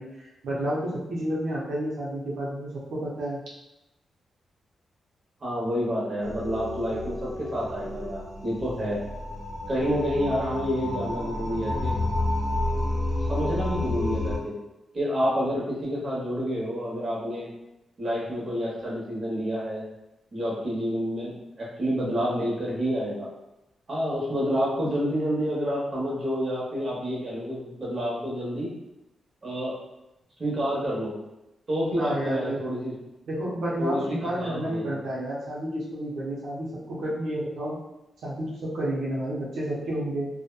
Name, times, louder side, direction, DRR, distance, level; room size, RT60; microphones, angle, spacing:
voice 1, 0.0-3.4 32.0-32.7 33.3-37.8 38.2-40.3, right 1 dB, 80° right, -5 dB, 0.5 m, -30 dB
voice 2, 5.4-9.0 9.7-12.0 13.3-14.6 14.9-17.5 18.0-19.8 20.3-21.3 21.6-23.3 23.9-28.7 29.4-29.8 30.4-31.2 31.7-32.9 33.8-34.9, equal, 35° right, -5 dB, 0.9 m, -28 dB
sound 1, 6.2-14.4, left 1 dB, 30° left, 0.7 m, -30 dB
sound 2, 6.3-13.1 13.4-13.6, left 1 dB, 65° right, 0.9 m, -44 dB
2.8 x 2.1 x 2.2 m, 0.90 s
wide cardioid pair, 135°, 0 cm